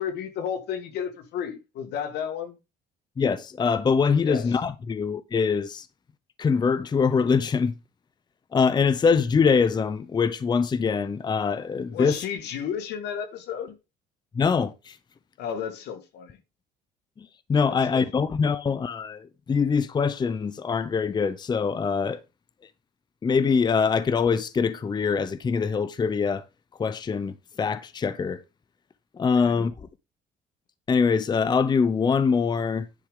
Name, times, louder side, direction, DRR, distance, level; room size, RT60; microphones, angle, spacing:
voice 1, 0.0-2.6 4.2-4.5 11.9-13.8 15.4-16.4 17.7-18.0 29.3-29.6, left 8 dB, 80° left, 1.8 m, -32 dB
voice 2, 3.2-5.9 6.4-7.7 8.5-12.2 14.3-15.0 17.2-22.2 23.2-26.4 26.8-28.4 29.1-29.9 30.9-32.9, left 5 dB, 25° left, 0.6 m, -24 dB
10.5 x 6.3 x 3.7 m
cardioid pair, 110°, 17 cm